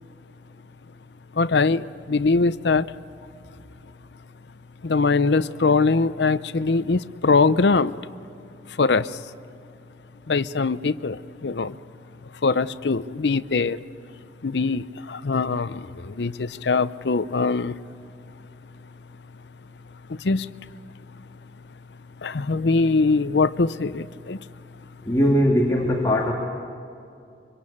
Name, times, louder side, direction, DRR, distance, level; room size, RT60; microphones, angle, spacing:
voice 1, 1.3-2.9 4.8-8.0 8.8-9.2 10.3-11.8 12.4-13.8 14.4-17.7 20.2-20.5 22.2-24.4, left 4 dB, 75° left, 15 dB, 0.6 m, -22 dB
voice 2, 25.1-26.3, equal, 20° left, -1 dB, 2.1 m, -20 dB
24.5 x 24.5 x 8.6 m, 2.5 s
head